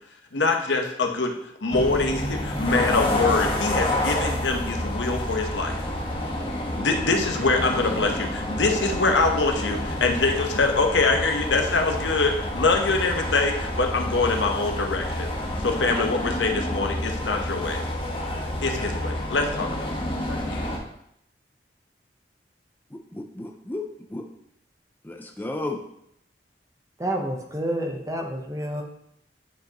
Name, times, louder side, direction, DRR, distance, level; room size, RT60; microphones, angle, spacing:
voice 1, 0.3-1.3 1.6-5.8 6.8-15.4 15.6-17.8 18.6-19.9 20.3-20.6, left 3 dB, 90° left, 3 dB, 1.0 m, -24 dB
sound 1, 1.7-20.8, left 1 dB, 30° left, 1.1 m, -29 dB
voice 2, 22.9-24.2 25.0-25.8, left 2 dB, 10° left, 2 dB, 0.5 m, -33 dB
voice 3, 27.0-28.8, right 1 dB, 20° right, 3 dB, 0.8 m, -29 dB
9.2 x 4.9 x 2.9 m, 0.73 s
head